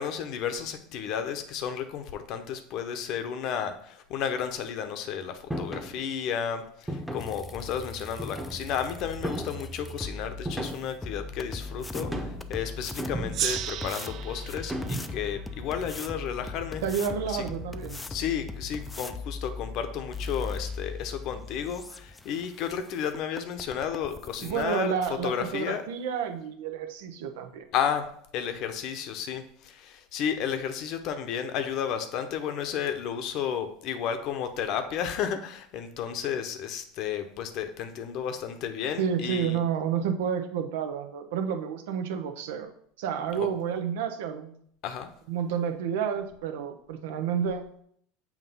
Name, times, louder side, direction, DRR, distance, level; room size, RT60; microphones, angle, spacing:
voice 1, 0.0-16.8 17.2-17.4 18.1-24.9 25.2-25.8 27.7-39.6 43.4-43.5 44.8-45.1, left 8 dB, 55° left, 8 dB, 0.8 m, -32 dB
sound 1, 5.5-5.9 6.9-7.4 8.2-8.8 9.2-9.7 10.5-11.0 11.9-12.5 13.0-13.6 14.7-15.3, right 1 dB, 5° right, 1.0 m, -35 dB
sound 2, 7.2-24.7, left 3 dB, 15° left, 0.5 m, -39 dB
Gong, 13.3-16.5, right 12 dB, 55° right, 0.3 m, -36 dB
voice 2, 16.8-18.0 24.4-27.7 39.0-42.7 43.0-44.6 45.3-47.7, right 7 dB, 75° right, 6 dB, 0.7 m, -30 dB
7.2 x 2.7 x 5.5 m, 0.66 s
hypercardioid pair, 90°, 0 cm